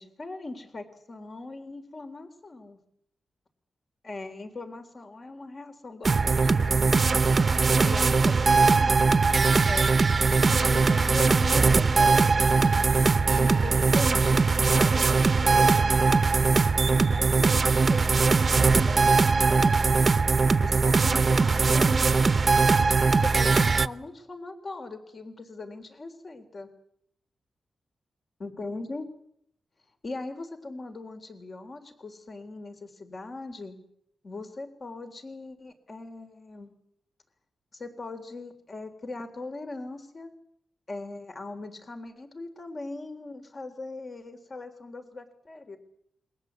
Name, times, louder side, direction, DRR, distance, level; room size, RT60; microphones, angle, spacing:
voice 1, 0.0-2.8 4.0-6.9 7.8-9.0 9.6-13.0 13.3-15.9 16.9-20.1 20.6-22.0 23.2-26.7 28.4-29.0 30.0-33.8 34.2-36.7 37.7-40.3 40.9-45.8, left 2 dB, 45° left, 6 dB, 3.6 m, -40 dB
sound 1, 6.0-23.9, right 4 dB, 40° right, 1.0 m, -21 dB
28.0 x 22.5 x 8.2 m, 0.72 s
cardioid pair, 85°, 0 cm